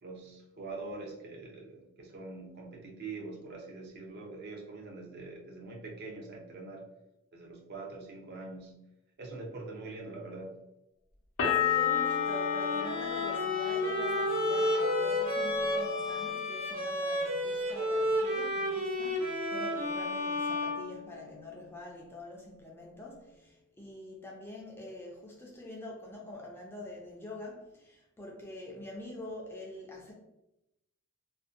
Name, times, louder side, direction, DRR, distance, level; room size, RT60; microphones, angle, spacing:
voice 1, 0.0-6.9 7.3-8.8 9.2-10.6, right 3 dB, 50° right, -1 dB, 0.5 m, -44 dB
sound 1, 11.4-17.0 17.3-18.1, left 8 dB, 70° left, 0.5 m, -33 dB
voice 2, 11.4-30.1, left 1 dB, 10° left, -2 dB, 0.4 m, -45 dB
Bowed string instrument, 11.8-21.5, left 1 dB, 80° right, 1.1 m, -32 dB
2.5 x 2.1 x 2.4 m, 0.89 s
head